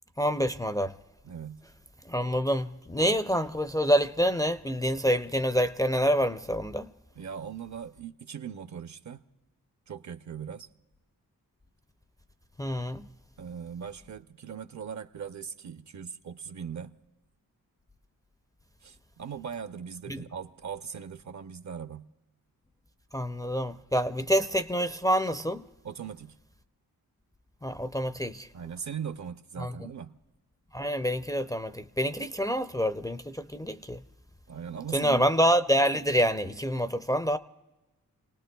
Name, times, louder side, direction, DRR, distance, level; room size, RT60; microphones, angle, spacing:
voice 1, 0.2-0.9 2.1-6.9 12.6-13.1 20.1-20.2 23.1-25.6 27.6-28.5 29.6-29.7 30.7-34.0 34.9-37.4, equal, 10° left, 0.4 m, -27 dB
voice 2, 1.2-1.6 7.2-9.2 9.9-10.7 13.4-16.9 18.8-22.1 24.2-24.3 25.8-26.3 28.5-30.2 34.5-35.3, right 7 dB, 50° right, 0.7 m, -39 dB
30.0 x 18.5 x 2.3 m
cardioid pair, 75°, 36 cm